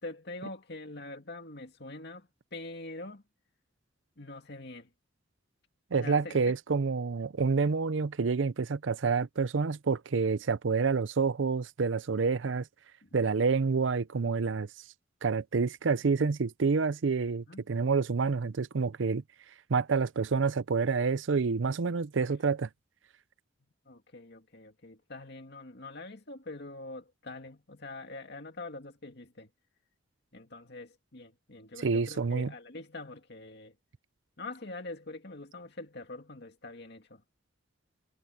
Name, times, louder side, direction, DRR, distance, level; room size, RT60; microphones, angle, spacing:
voice 1, 0.0-3.2 4.2-4.9 5.9-6.4 13.0-13.2 17.5-17.6 23.9-29.5 30.3-33.7 34.4-37.2, left 2 dB, 60° left, 2.2 m, -44 dB
voice 2, 5.9-12.7 13.1-14.7 15.2-19.2 19.7-22.7 31.8-32.5, right 4 dB, 75° right, 0.6 m, -28 dB
head